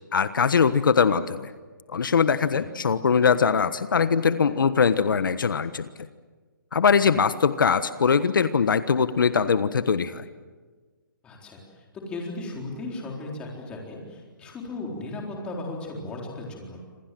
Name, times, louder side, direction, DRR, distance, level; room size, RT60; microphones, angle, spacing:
voice 1, 0.1-1.5 1.9-5.9 6.7-10.2, left 6 dB, 70° left, 12 dB, 1.3 m, -21 dB
voice 2, 11.2-11.6 12.1-16.8, left 2 dB, 10° left, -1 dB, 4.0 m, -36 dB
29.0 x 27.0 x 7.7 m, 1.4 s
hypercardioid pair, 175°, 11 cm